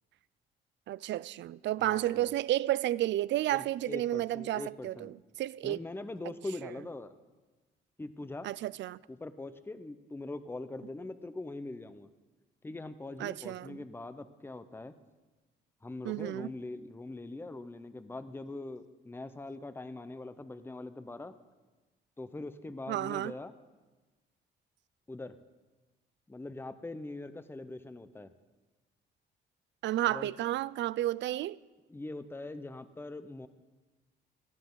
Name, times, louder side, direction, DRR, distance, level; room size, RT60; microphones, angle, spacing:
voice 1, 0.9-5.1 5.4-5.8 8.4-9.0 13.2-13.8 16.0-16.5 22.9-23.3 29.8-31.6, right 14 dB, 65° right, 0.4 m, -31 dB
voice 2, 1.8-2.3 3.5-5.1 5.6-7.1 8.0-8.5 9.1-12.1 12.6-14.9 15.8-21.3 22.2-23.5 25.1-25.4 26.3-28.3 30.1-30.3 31.9-33.5, left 2 dB, 10° left, 0.7 m, -42 dB
18.0 x 13.5 x 3.9 m
cardioid pair, 90°, 20 cm